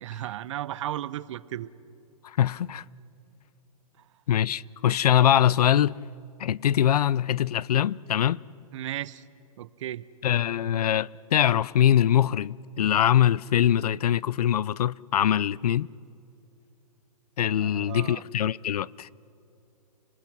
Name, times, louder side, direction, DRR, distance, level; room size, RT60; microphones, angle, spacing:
voice 1, 0.0-1.7 8.7-9.2 9.6-10.0 17.6-18.2, right 12 dB, 50° right, 0.6 m, -35 dB
voice 2, 2.2-2.8 4.3-6.0 6.4-8.4 10.2-15.9 17.4-19.1, left 10 dB, 80° left, 0.4 m, -23 dB
29.5 x 20.5 x 6.0 m
hypercardioid pair, 145°, 20 cm